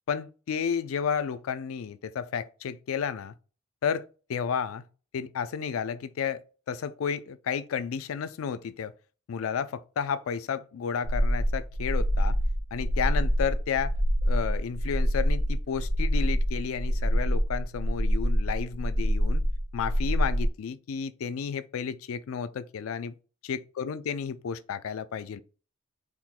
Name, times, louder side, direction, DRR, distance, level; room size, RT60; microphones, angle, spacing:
voice 1, 0.1-3.3 3.8-4.9 5.1-8.9 9.3-12.4 12.7-13.9 14.3-19.4 19.7-23.2 23.4-25.4, left 7 dB, 75° left, 0.4 m, -32 dB
sound 1, 11.0-20.5, equal, 60° right, 0.6 m, -26 dB
4.5 x 2.2 x 3.7 m
head